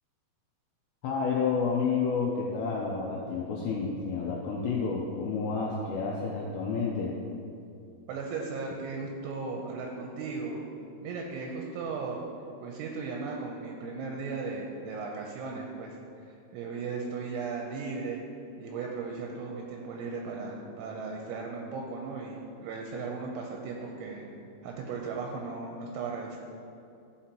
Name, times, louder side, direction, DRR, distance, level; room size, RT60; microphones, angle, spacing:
voice 1, 1.0-7.1, left 5 dB, 80° left, -3 dB, 2.5 m, -30 dB
voice 2, 8.1-10.6 11.0-12.2 12.6-18.2 18.6-24.3 24.6-26.4, right 4 dB, 80° right, 0 dB, 2.9 m, -36 dB
14.0 x 5.6 x 2.9 m, 2.6 s
omnidirectional pair, 5.8 m